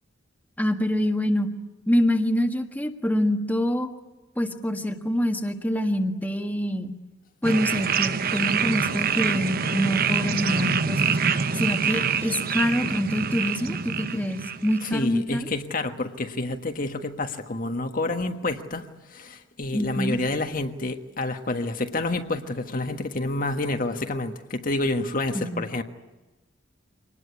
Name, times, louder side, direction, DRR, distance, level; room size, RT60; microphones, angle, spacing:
voice 1, 0.6-1.5 1.9-3.9 4.4-6.9 7.4-11.2 11.6-15.5 19.7-20.2 25.3-25.6, equal, 10° left, 1.6 m, -25 dB
sound 1, 7.4-14.9, right 6 dB, 50° right, 1.0 m, -25 dB
voice 2, 14.8-25.8, left 2 dB, 45° left, 1.5 m, -29 dB
25.5 x 20.0 x 9.8 m
head